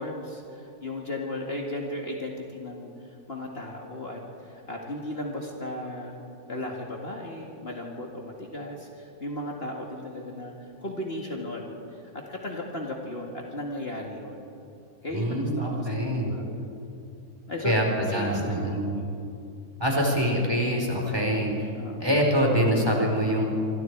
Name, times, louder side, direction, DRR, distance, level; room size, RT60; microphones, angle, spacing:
voice 1, 0.0-6.2 6.5-10.5 10.8-14.5 15.0-16.7 17.5-17.7 18.1-19.2 21.7-22.1, left 1 dB, 40° left, -1 dB, 2.3 m, -36 dB
voice 2, 15.1-16.3 17.6-19.0 19.8-21.7 22.0-23.4, equal, 15° right, 0 dB, 4.1 m, -25 dB
26.5 x 26.0 x 4.7 m, 2.6 s
omnidirectional pair, 1.6 m